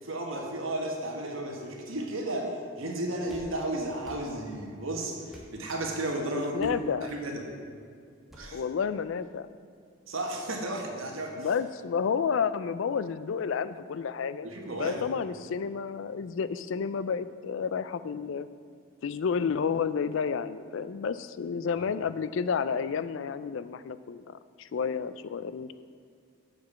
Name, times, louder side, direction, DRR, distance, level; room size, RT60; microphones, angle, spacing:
voice 1, 0.0-6.7 7.0-7.5 8.3-8.6 10.1-11.5 14.4-15.0, right 1 dB, 80° right, 1 dB, 1.4 m, -33 dB
sound 1, 3.3-3.5 4.0-4.3 5.3-5.5 6.6-6.8 8.3-8.5, equal, ahead, 0.9 m, -48 dB
voice 2, 6.3-7.1 8.5-9.5 11.4-14.5 14.8-18.5 19.0-25.7, left 6 dB, 70° left, 14 dB, 0.4 m, -31 dB
7.4 x 5.3 x 7.1 m, 2.3 s
head